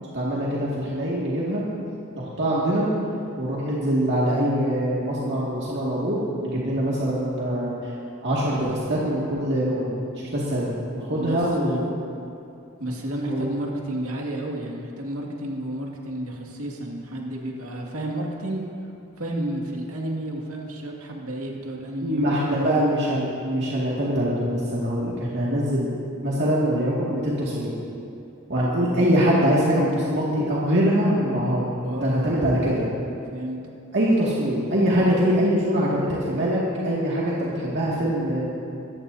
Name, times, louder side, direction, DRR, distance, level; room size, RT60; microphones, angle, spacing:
voice 1, 0.1-1.6 2.2-2.9 3.4-7.7 8.2-11.9 13.3-13.4 22.0-25.9 26.2-27.7 28.5-31.7 32.0-32.9 33.9-38.5, equal, 55° right, -7 dB, 2.2 m, -23 dB
voice 2, 11.2-11.9 12.8-18.6 19.2-22.8 31.8-32.4 33.3-33.7, right 1 dB, 85° right, -1 dB, 2.2 m, -31 dB
24.0 x 14.5 x 2.8 m, 2.7 s
head